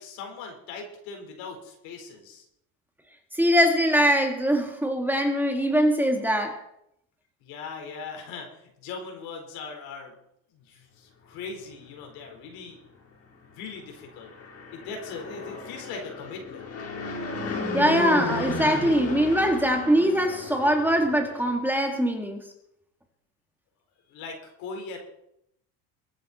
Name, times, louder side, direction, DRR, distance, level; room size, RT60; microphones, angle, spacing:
voice 1, 0.0-2.4 7.4-10.1 10.5-12.8 13.5-14.3 14.7-16.7 24.1-25.0, left 4 dB, 75° left, 4.4 m, -40 dB
voice 2, 3.3-6.6 17.7-22.4, equal, 5° right, 2.0 m, -22 dB
Fixed-wing aircraft airplane, 14.1-21.5, left 3 dB, 40° left, 5.4 m, -34 dB
23.0 x 9.5 x 4.3 m
cardioid pair, 120°, 37 cm